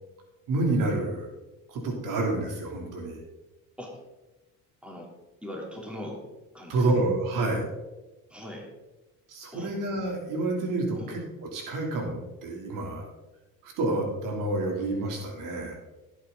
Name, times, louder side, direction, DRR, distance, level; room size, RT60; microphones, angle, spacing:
voice 1, 0.5-1.3 1.7-3.2 6.7-7.6 9.3-11.2 11.5-13.0 13.6-15.8, right 2 dB, 70° right, 0 dB, 3.1 m, -28 dB
voice 2, 5.4-6.2 6.5-6.9 8.3-8.7 9.5-9.7 10.9-11.1, left 1 dB, 5° right, -1 dB, 3.2 m, -40 dB
16.0 x 8.4 x 3.8 m, 1.1 s
cardioid pair, 120°, 33 cm